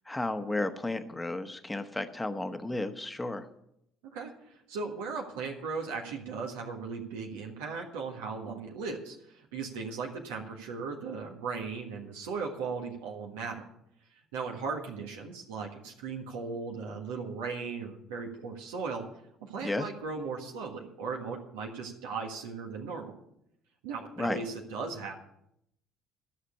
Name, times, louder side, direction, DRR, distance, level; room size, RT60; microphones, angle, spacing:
voice 1, 0.1-3.5 19.6-19.9 24.2-24.4, left 2 dB, 15° left, 9 dB, 1.2 m, -33 dB
voice 2, 4.1-13.6 14.3-19.0 19.4-23.1 23.8-25.1, right 4 dB, 70° right, 1 dB, 1.5 m, -37 dB
12.5 x 6.6 x 8.3 m, 0.77 s
figure-of-eight pair, 55°, 0 cm